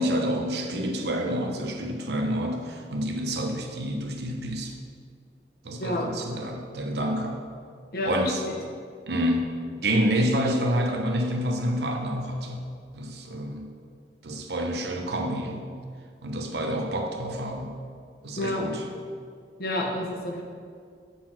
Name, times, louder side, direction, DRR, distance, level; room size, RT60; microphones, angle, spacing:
voice 1, 0.0-4.7 5.6-7.4 8.1-8.4 9.1-9.5 9.8-12.6 12.9-13.7 14.2-15.6 16.2-17.7 18.2-18.8, equal, 70° right, 3 dB, 0.9 m, -28 dB
voice 2, 19.6-20.4, left 1 dB, 55° left, 0 dB, 1.2 m, -29 dB
8.3 x 4.2 x 5.8 m, 2.1 s
head